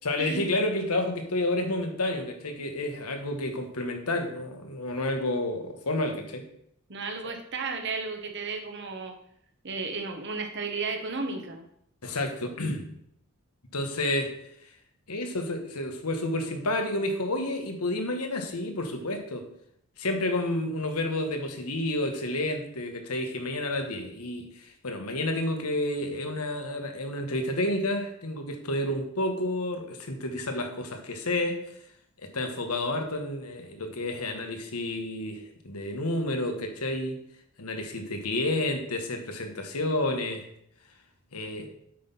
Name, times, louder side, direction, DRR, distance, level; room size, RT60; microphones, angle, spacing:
voice 1, 0.0-6.4 12.0-12.9 13.7-14.3 15.1-19.4 20.0-31.6 32.2-37.2 37.6-40.4 41.3-41.7, left 1 dB, 85° left, 5 dB, 1.5 m, -30 dB
voice 2, 6.9-9.2 9.6-11.6, right 4 dB, 50° right, 5 dB, 1.3 m, -33 dB
8.5 x 6.1 x 5.5 m, 0.70 s
head